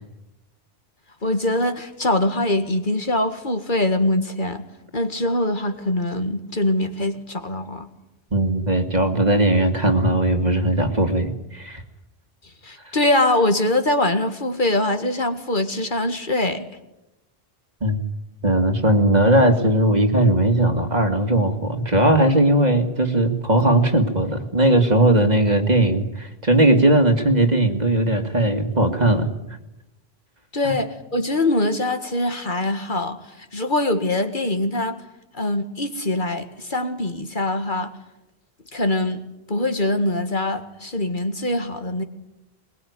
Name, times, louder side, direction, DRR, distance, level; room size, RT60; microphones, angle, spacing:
voice 1, 1.2-4.6 4.9-7.9 12.6-16.7 30.5-35.0 35.3-37.9 38.7-39.2 39.5-42.0, left 1 dB, 50° left, 7 dB, 2.1 m, -23 dB
voice 2, 8.3-11.8 17.8-18.0 18.4-29.3 30.6-30.7, right 1 dB, 45° right, 6 dB, 2.3 m, -18 dB
22.0 x 22.0 x 9.6 m, 0.93 s
omnidirectional pair, 1.0 m